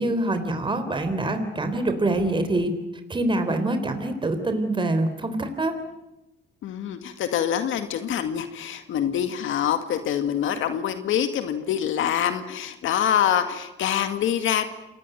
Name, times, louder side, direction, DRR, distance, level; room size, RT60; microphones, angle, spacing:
voice 1, 0.0-2.7 3.1-5.7, right 2 dB, 25° right, 8 dB, 3.8 m, -25 dB
voice 2, 6.6-14.7, left 9 dB, 80° left, 8 dB, 2.1 m, -25 dB
28.5 x 19.5 x 9.2 m, 0.96 s
cardioid pair, 90°, 20 cm